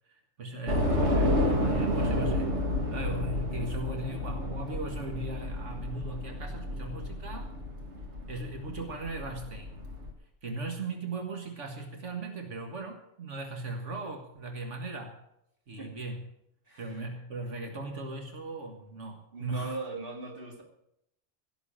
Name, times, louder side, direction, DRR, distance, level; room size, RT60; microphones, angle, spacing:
voice 1, 0.1-2.6 2.9-7.5 8.3-9.8 10.4-15.2 15.7-16.2 16.8-19.8, right 2 dB, 90° right, 4 dB, 2.0 m, -38 dB
Train / Subway metro underground, 0.7-10.1, left 1 dB, 70° right, 2.5 m, -30 dB
voice 2, 16.7-17.0 19.3-20.6, right 2 dB, 50° right, 2 dB, 2.7 m, -39 dB
16.5 x 6.9 x 8.7 m, 0.78 s
omnidirectional pair, 1.2 m